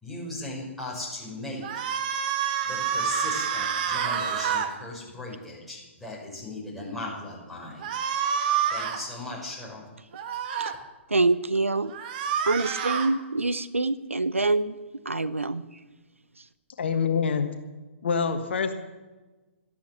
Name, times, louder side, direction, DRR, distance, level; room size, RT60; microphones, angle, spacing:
voice 1, 0.0-1.6 2.6-7.9 8.7-9.9, left 2 dB, ahead, -6 dB, 5.8 m, -37 dB
sound 1, 1.6-4.7 7.8-9.0 10.1-10.7 11.9-13.1, right 7 dB, 40° right, 1.7 m, -28 dB
voice 2, 11.1-11.9 12.5-14.8 15.1-15.6, right 3 dB, 80° right, 15 dB, 0.7 m, -25 dB
voice 3, 16.8-17.5 18.0-18.7, left 6 dB, 55° left, 7 dB, 1.4 m, -25 dB
13.0 x 11.5 x 7.8 m, 1.2 s
figure-of-eight pair, 120°, 7 cm